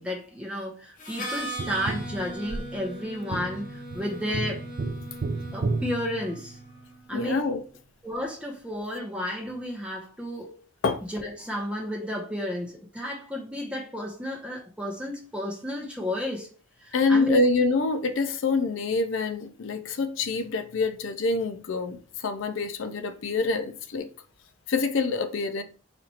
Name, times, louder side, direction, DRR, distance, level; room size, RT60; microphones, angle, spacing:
voice 1, 0.0-4.7 5.5-6.6 7.1-7.4 8.0-10.6 11.1-16.5 16.8-17.4, left 1 dB, 5° right, 0.9 m, -32 dB
Harmonica, 1.0-6.7, equal, 40° left, 1.0 m, -39 dB
Tap, 1.6-6.9 9.5-9.6, right 3 dB, 60° right, 0.5 m, -33 dB
voice 2, 7.1-7.6 10.8-11.0 16.9-24.1 24.7-25.6, left 3 dB, 80° left, 0.5 m, -26 dB
4.3 x 2.5 x 4.1 m
head